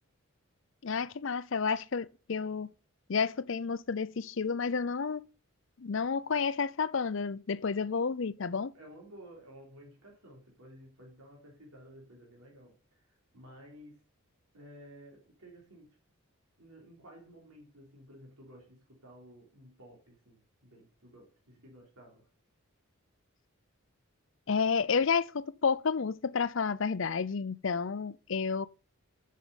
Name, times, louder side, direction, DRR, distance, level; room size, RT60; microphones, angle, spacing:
voice 1, 0.8-2.7 3.1-5.3 5.8-8.7 24.5-28.7, left 5 dB, 60° left, 0.5 m, -31 dB
voice 2, 8.7-14.0 14.5-16.0 16.6-22.3, equal, 85° right, 3.6 m, -54 dB
7.6 x 7.4 x 7.0 m
head